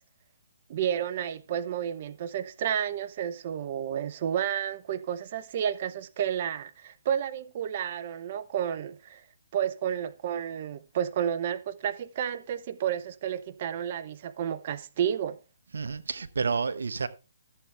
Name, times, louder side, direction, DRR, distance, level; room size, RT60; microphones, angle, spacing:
voice 1, 0.7-9.2 9.5-15.4, right 9 dB, 40° right, 0.8 m, -31 dB
voice 2, 15.7-17.1, right 5 dB, 80° right, 1.0 m, -30 dB
14.0 x 8.0 x 3.4 m
hypercardioid pair, 155°, 0 cm